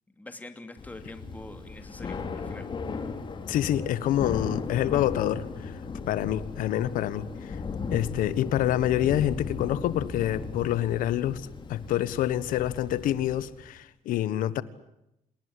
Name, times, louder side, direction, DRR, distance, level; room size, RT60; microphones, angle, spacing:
voice 1, 0.2-2.7, left 2 dB, 10° left, 7 dB, 2.8 m, -44 dB
Thunder / Rain, 0.8-13.7, left 4 dB, 35° left, 3.3 m, -37 dB
voice 2, 3.5-5.8 6.1-7.6 7.9-14.6, left 12 dB, 80° left, 16 dB, 1.4 m, -27 dB
27.5 x 19.5 x 9.9 m, 0.85 s
cardioid pair, 110°, 14 cm